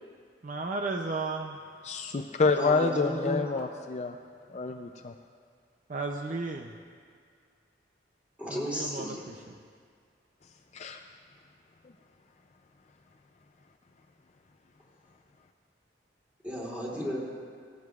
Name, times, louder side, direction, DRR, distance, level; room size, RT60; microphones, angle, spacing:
voice 1, 0.4-1.6 5.9-6.8 8.5-9.6, right 3 dB, 45° right, 3 dB, 0.5 m, -34 dB
voice 2, 1.8-4.2 4.5-5.1 10.7-11.0, left 4 dB, 35° left, 5 dB, 0.4 m, -28 dB
voice 3, 2.6-3.4 8.4-9.2 16.4-17.2, equal, 10° right, -6 dB, 2.8 m, -34 dB
18.5 x 13.5 x 2.4 m, 2.1 s
head